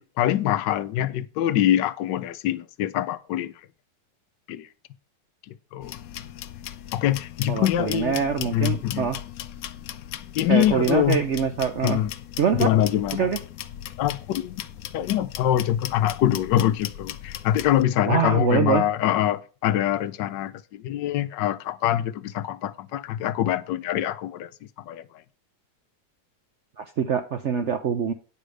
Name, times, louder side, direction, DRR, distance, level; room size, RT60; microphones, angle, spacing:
voice 1, 0.0-3.5 4.5-4.7 5.5-6.0 6.9-9.1 10.4-11.2 11.8-12.1 12.6-13.3 14.0-14.6 14.9-24.5 24.9-25.0, left 12 dB, 85° left, 1.3 m, -24 dB
sound 1, 5.8-17.8, left 11 dB, 70° left, 0.9 m, -38 dB
voice 2, 7.5-9.2 10.5-12.0 12.4-12.7 13.2-13.4 18.1-18.8 26.8-28.1, right 7 dB, 65° right, 0.7 m, -24 dB
9.4 x 5.0 x 6.3 m
omnidirectional pair, 1.9 m